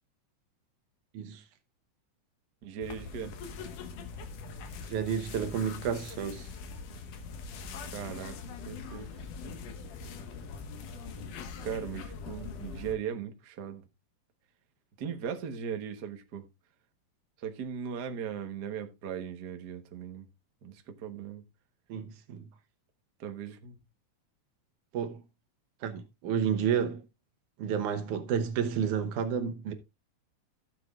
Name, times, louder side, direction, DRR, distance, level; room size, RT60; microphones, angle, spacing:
voice 1, 2.6-3.4 7.9-9.1 9.4-9.6 11.6-13.8 15.0-16.5 17.4-20.3 20.6-21.4 23.2-23.8, right 8 dB, 55° right, 1.1 m, -38 dB
sound 1, 2.8-12.9, left 4 dB, 85° left, 2.9 m, -42 dB
voice 2, 4.9-6.5 21.9-22.5 24.9-25.2 25.8-27.0 27.6-29.7, right 7 dB, 75° right, 2.6 m, -31 dB
15.5 x 7.7 x 2.4 m
omnidirectional pair, 3.5 m